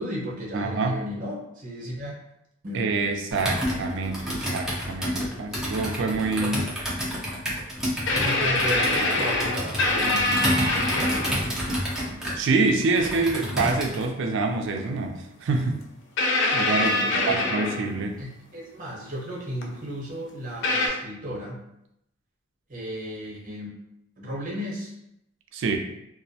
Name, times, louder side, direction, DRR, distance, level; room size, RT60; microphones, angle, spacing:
voice 1, 0.0-2.1 2.6-2.8 6.4-6.5 8.2-11.2 16.7-17.4 18.2-21.6 22.7-23.8 24.2-24.9, equal, 45° right, -4 dB, 0.7 m, -34 dB
voice 2, 0.5-1.0 2.7-6.6 12.3-15.8 16.5-16.9 17.3-18.2 25.5-25.8, right 3 dB, 65° right, 4 dB, 0.3 m, -26 dB
Computer keyboard, 3.3-14.1, equal, 5° right, 0.5 m, -29 dB
sound 1, 6.5-6.7 8.1-11.6 12.8-12.9 14.8-14.9 16.2-18.2 19.6-19.7 20.6-20.9, left 2 dB, 65° left, 0.4 m, -24 dB
2.2 x 2.0 x 2.7 m, 0.82 s
head